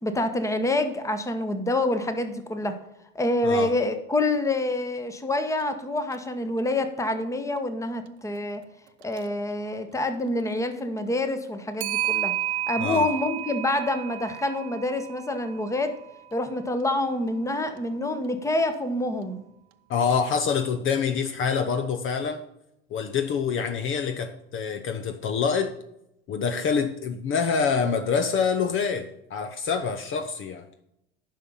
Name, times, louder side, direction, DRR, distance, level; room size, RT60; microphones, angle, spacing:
voice 1, 0.0-2.8 3.1-8.6 9.0-12.3 12.7-15.9 16.3-19.4, left 2 dB, 10° left, 1.1 m, -27 dB
Clock, 5.6-5.7 6.1-6.2 9.0-9.2 11.8-16.0, right 14 dB, 70° right, 0.8 m, -31 dB
voice 2, 19.9-22.4 22.9-25.7 26.3-30.6, left 6 dB, 40° left, 0.9 m, -26 dB
10.5 x 5.8 x 5.6 m
hypercardioid pair, 90°, 33 cm